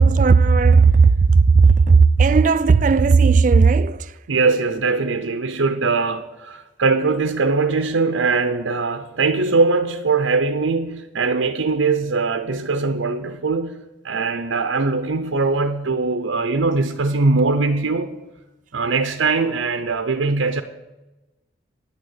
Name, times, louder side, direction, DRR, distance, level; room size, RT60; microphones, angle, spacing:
voice 1, 0.0-4.1, right 4 dB, 40° right, 0.3 m, -14 dB
voice 2, 4.3-13.8 14.0-18.2 18.7-20.6, right 3 dB, 90° right, 0.7 m, -21 dB
9.7 x 6.4 x 8.6 m
head